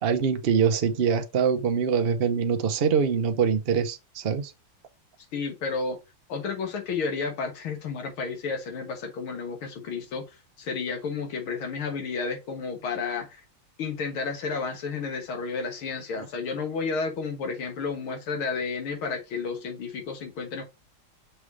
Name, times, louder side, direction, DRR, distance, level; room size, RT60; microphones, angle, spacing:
voice 1, 0.0-4.5, right 6 dB, 80° right, 0.5 m, -24 dB
voice 2, 5.3-6.0 6.3-10.3 10.6-13.4 13.8-20.6, left 4 dB, 90° left, 2.3 m, -31 dB
6.1 x 3.2 x 4.9 m
omnidirectional pair, 2.2 m